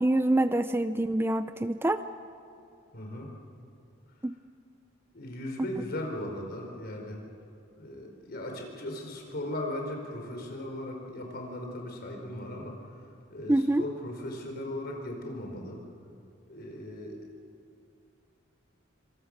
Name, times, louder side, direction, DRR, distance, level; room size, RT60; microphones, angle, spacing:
voice 1, 0.0-2.0 4.2-4.3 13.5-13.8, right 1 dB, 10° right, 11 dB, 0.5 m, -25 dB
voice 2, 2.9-3.3 5.1-7.2 7.8-12.7 13.3-15.8 16.5-17.2, left 1 dB, 55° left, 1 dB, 4.7 m, -37 dB
25.5 x 25.5 x 6.6 m, 2.6 s
head